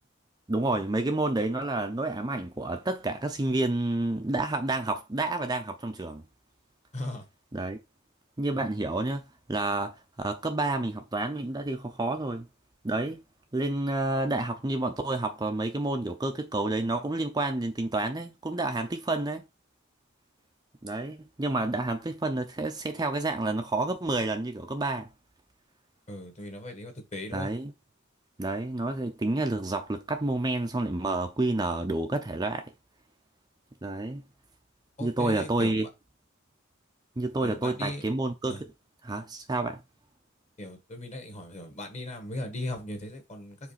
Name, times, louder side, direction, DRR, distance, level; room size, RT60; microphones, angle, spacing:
voice 1, 0.5-6.2 7.5-7.8 8.4-9.2 9.5-12.5 12.8-13.2 13.5-19.4 20.8-25.1 27.3-27.7 28.4-32.7 33.8-34.2 35.0-35.9 37.2-38.7 39.0-39.8, right 2 dB, 20° right, 0.5 m, -29 dB
voice 2, 6.9-7.2 26.1-27.5 35.0-35.7 37.4-38.0 38.5-38.6 40.6-43.7, left 1 dB, 35° left, 1.5 m, -38 dB
4.9 x 3.7 x 5.7 m
head